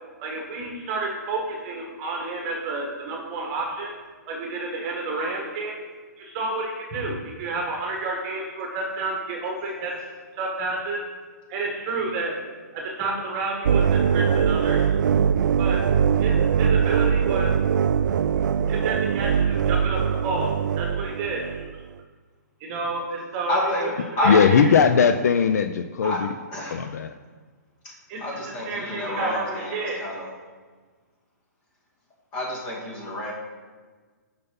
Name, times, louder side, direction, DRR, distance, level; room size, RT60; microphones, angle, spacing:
voice 1, 0.2-3.9 4.3-5.8 6.2-9.9 10.4-11.0 11.5-12.3 12.7-14.9 15.6-15.8 16.2-17.5 18.4-20.5 20.8-21.8 22.6-23.9 24.2-24.7 28.1-30.0, right 3 dB, 25° right, 0 dB, 1.6 m, -30 dB
sound 1, 13.6-21.7, right 7 dB, 75° right, 0.4 m, -22 dB
voice 2, 23.5-23.8 24.2-24.3 26.0-26.2 26.5-26.8 28.2-30.3 32.3-33.3, left 1 dB, 25° left, -3 dB, 2.3 m, -28 dB
voice 3, 24.2-26.3 26.7-27.1, left 6 dB, 60° left, 9 dB, 0.5 m, -19 dB
7.8 x 5.6 x 5.4 m, 1.4 s
hypercardioid pair, 160°, 10 cm